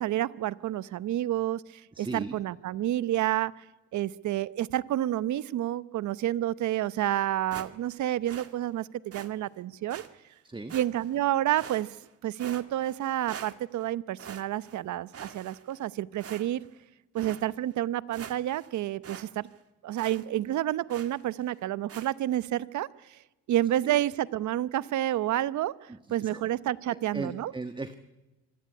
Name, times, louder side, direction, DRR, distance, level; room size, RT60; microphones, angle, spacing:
voice 1, 0.0-3.6 3.9-10.0 10.7-12.0 12.2-16.6 17.1-19.5 19.8-23.2 23.5-27.5, right 13 dB, 70° right, 18 dB, 0.9 m, -29 dB
voice 2, 1.9-2.3 10.4-10.7 23.8-23.9 26.2-26.4 26.9-27.9, right 3 dB, 15° right, 10 dB, 1.4 m, -37 dB
sound 1, 7.5-8.0 8.3-8.5 9.1-9.3 9.9-10.1 10.7-11.2 11.6-12.1 12.4-13.0 13.3-13.9 14.2-14.8 15.1-15.8 16.2-16.7 17.2-17.4 17.8-17.9 18.1-18.7 19.0-19.3 19.5-19.6 20.0-20.2 20.9-21.2 21.9-22.1, right 7 dB, 50° right, 2.0 m, -44 dB
25.5 x 17.0 x 9.8 m, 1.1 s
cardioid pair, 90°, 30 cm